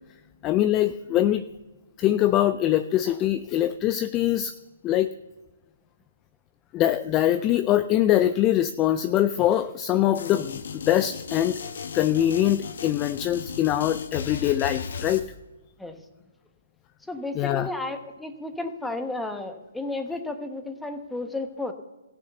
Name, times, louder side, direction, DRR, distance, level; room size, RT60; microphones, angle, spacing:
voice 1, 0.4-1.4 2.0-4.5 4.8-5.1 6.7-11.6 11.9-15.3 17.3-17.7, left 12 dB, 20° left, 12 dB, 0.4 m, -23 dB
sound 1, 10.1-15.2, left 5 dB, 65° left, 1.2 m, -36 dB
voice 2, 17.1-21.7, left 2 dB, 5° left, 7 dB, 1.0 m, -33 dB
14.5 x 8.7 x 6.9 m, 1.2 s
hypercardioid pair, 155°, 0 cm